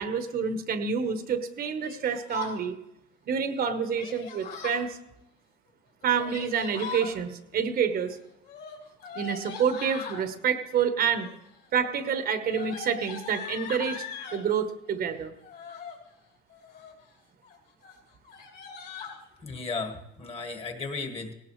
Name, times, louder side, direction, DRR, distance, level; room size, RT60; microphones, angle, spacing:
voice 1, 0.0-2.7 3.3-5.0 6.0-8.2 9.1-11.3 11.7-14.0 14.3-15.3, right 7 dB, 45° right, 8 dB, 1.2 m, -28 dB
Yell, 1.8-2.6 3.9-4.8 6.0-7.1 8.4-10.2 11.1-11.5 11.8-14.4 15.4-16.0 16.5-17.0 17.4-17.6 17.8-17.9 18.2-19.2, left 6 dB, 55° left, 3.4 m, -40 dB
voice 2, 19.4-21.3, left 4 dB, 30° left, 5 dB, 1.7 m, -35 dB
18.0 x 17.5 x 3.2 m, 0.85 s
cardioid pair, 140°, 21 cm